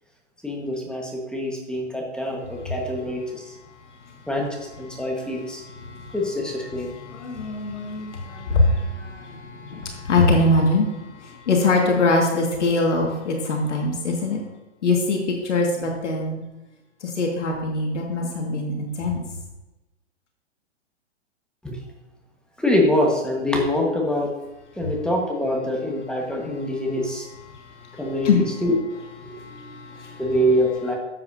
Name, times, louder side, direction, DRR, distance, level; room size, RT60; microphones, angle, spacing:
voice 1, 0.4-3.5 4.3-5.6 6.1-6.9 21.6-21.8 22.6-24.3 24.8-27.2 27.9-28.7 30.2-30.9, left 1 dB, ahead, 0 dB, 1.4 m, -24 dB
voice 2, 3.8-4.3 4.9-5.2 5.5-6.2 6.7-14.4 14.8-16.4 17.0-19.2 27.5-28.5 29.2-30.3, left 2 dB, 75° left, 0 dB, 2.1 m, -24 dB
12.0 x 8.1 x 2.7 m, 1.0 s
hypercardioid pair, 130°, 36 cm